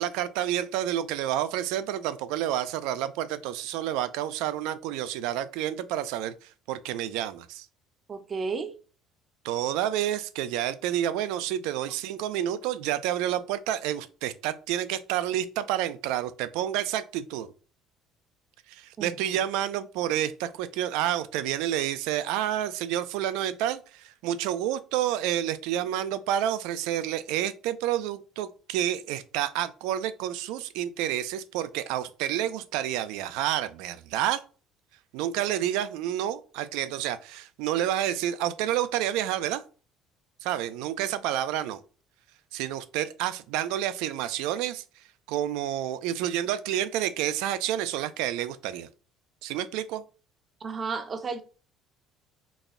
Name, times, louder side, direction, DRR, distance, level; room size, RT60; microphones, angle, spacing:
voice 1, 0.0-6.3 6.7-7.7 9.4-17.5 18.7-34.4 35.1-39.6 40.4-41.8 42.5-44.8 45.3-48.9 49.4-50.0, right 11 dB, 85° right, 0.3 m, -29 dB
voice 2, 8.1-8.8 19.0-19.4 50.6-51.4, right 4 dB, 25° right, 0.5 m, -33 dB
4.0 x 2.2 x 3.5 m
cardioid pair, 145°, 0 cm